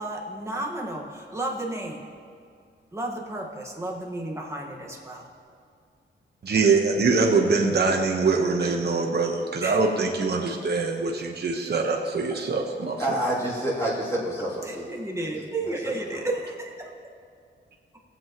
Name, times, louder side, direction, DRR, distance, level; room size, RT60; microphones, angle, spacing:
voice 1, 0.0-2.0 2.9-5.3 9.6-9.8 14.6-16.9, right 2 dB, 15° right, -1 dB, 1.5 m, -32 dB
voice 2, 6.4-13.0, right 4 dB, 55° right, 1 dB, 1.1 m, -23 dB
voice 3, 13.0-14.9 15.3-16.3, right 1 dB, 15° left, -8 dB, 2.9 m, -29 dB
20.0 x 7.8 x 3.0 m, 2.3 s
wide cardioid pair, 115°, 20 cm